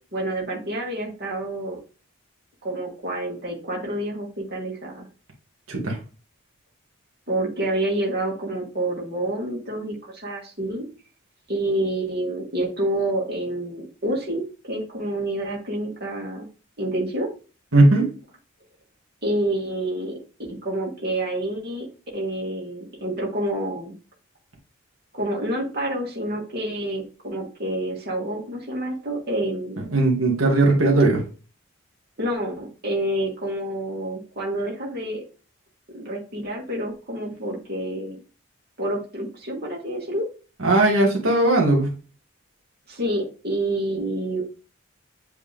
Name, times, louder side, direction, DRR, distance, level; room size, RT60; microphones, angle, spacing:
voice 1, 0.1-1.8 2.6-5.1 7.3-10.8 11.5-16.5 16.8-17.3 19.2-20.2 20.5-21.9 22.1-23.9 25.1-29.8 32.2-35.2 35.9-38.2 38.8-40.3 42.9-44.4, right 1 dB, 50° right, -2 dB, 1.9 m, -28 dB
voice 2, 17.7-18.1 29.9-31.2 40.6-41.9, right 2 dB, 85° right, 0 dB, 1.8 m, -18 dB
8.1 x 3.4 x 3.4 m, 0.35 s
head